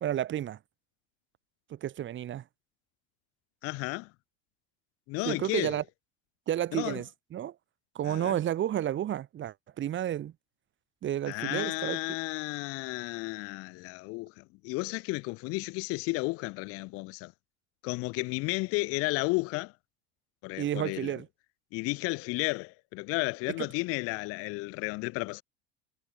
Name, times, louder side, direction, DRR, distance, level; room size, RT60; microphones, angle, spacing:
voice 1, 0.0-0.6 1.7-2.4 5.3-5.8 6.5-7.5 8.0-10.3 11.0-12.0 20.6-21.3 23.6-23.7, right 11 dB, 40° right, 1.8 m, -31 dB
voice 2, 3.6-4.1 5.1-5.8 6.7-7.0 8.0-8.4 11.3-17.3 17.8-19.7 20.4-21.2 21.7-25.4, left 25 dB, 50° left, 0.6 m, -33 dB
hypercardioid pair, 75°, 31 cm